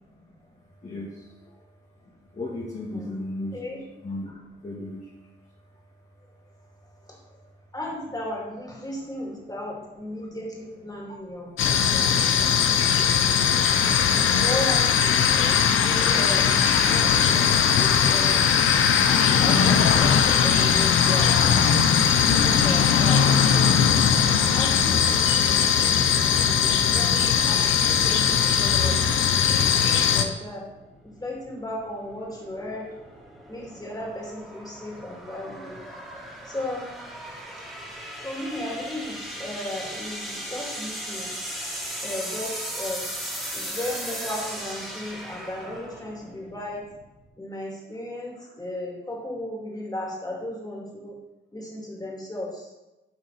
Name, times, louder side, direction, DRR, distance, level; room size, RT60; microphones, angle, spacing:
voice 1, 0.8-1.2 2.3-3.6 4.0-5.1, left 2 dB, 35° left, -6 dB, 1.7 m, -35 dB
voice 2, 2.8-3.1 3.5-3.8 7.1-7.2 7.7-12.1 14.1-18.6 19.3-21.6 22.1-23.9 24.5-25.7 26.3-29.2 29.6-30.7 31.0-32.9 33.5-35.8 36.4-37.0 37.5-37.6 38.2-41.4 42.0-43.1 43.5-46.9 47.4-51.2 51.5-52.7, left 1 dB, 20° left, -2 dB, 2.6 m, -35 dB
sound 1, 11.6-30.2, left 7 dB, 80° left, 0.6 m, -20 dB
sound 2, 30.5-47.3, equal, ahead, 2.5 m, -38 dB
11.0 x 3.8 x 4.1 m, 1.0 s
cardioid pair, 65°, 21 cm